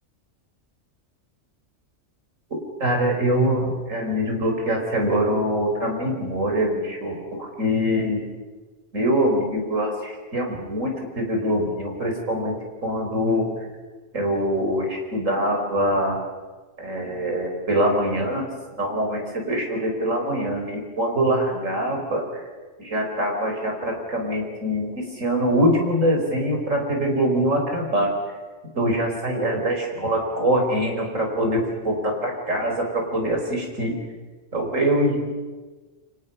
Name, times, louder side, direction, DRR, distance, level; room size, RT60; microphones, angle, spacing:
voice 1, 2.8-8.3 8.9-12.6 12.8-13.5 14.1-16.2 16.8-18.5 18.8-22.5 22.8-28.1 28.7-33.9 34.5-35.3, equal, 90° right, 1 dB, 5.0 m, -24 dB
29.5 x 24.5 x 5.6 m, 1.3 s
omnidirectional pair, 1.3 m